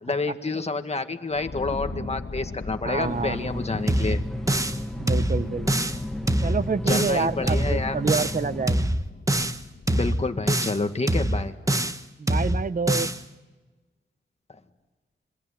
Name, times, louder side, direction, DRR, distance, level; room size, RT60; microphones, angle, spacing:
voice 1, 0.0-4.2 6.9-8.0 9.9-11.5, left 3 dB, 30° left, 7 dB, 1.9 m, -28 dB
sound 1, 1.3-10.9, left 3 dB, 50° left, 1.9 m, -39 dB
voice 2, 1.7-2.1 2.8-3.9 5.0-5.9 6.4-8.9 12.2-13.1, right 5 dB, 45° right, 15 dB, 0.9 m, -28 dB
sound 2, 3.0-8.8, equal, ahead, 1.1 m, -34 dB
sound 3, 3.9-4.8 5.1-6.0 6.3-7.2 7.5-8.4 8.7-9.6 9.9-10.8 11.1-12.0 12.3-13.2, right 1 dB, 15° right, 1.3 m, -24 dB
26.5 x 24.0 x 8.1 m, 1.2 s
wide cardioid pair, 85°, 20 cm